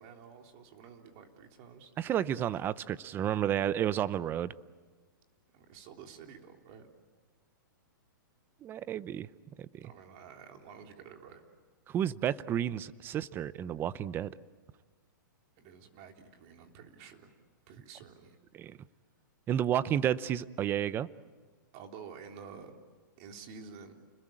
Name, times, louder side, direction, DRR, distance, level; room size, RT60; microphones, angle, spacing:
voice 1, 0.0-1.9 5.5-6.9 9.8-11.4 15.6-17.3 17.7-18.4 21.7-22.7 23.2-23.9, right 6 dB, 40° right, 3 dB, 3.5 m, -50 dB
voice 2, 2.0-4.5 8.6-9.3 9.6-9.9 11.9-14.3 18.5-18.8 19.5-21.1, right 10 dB, 20° right, 17 dB, 0.7 m, -31 dB
29.5 x 21.0 x 9.0 m, 1.5 s
hypercardioid pair, 150°, 11 cm